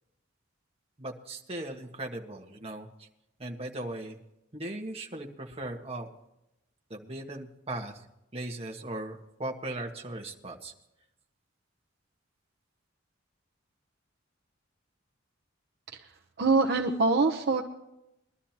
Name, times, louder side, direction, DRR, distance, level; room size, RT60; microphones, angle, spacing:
voice 1, 1.0-3.1 3.4-4.2 4.5-6.1 6.9-8.0 8.3-10.7, right 1 dB, 30° right, 1 dB, 1.5 m, -38 dB
voice 2, 16.4-17.6, right 3 dB, 55° right, 4 dB, 0.8 m, -24 dB
22.0 x 12.5 x 2.9 m, 0.87 s
head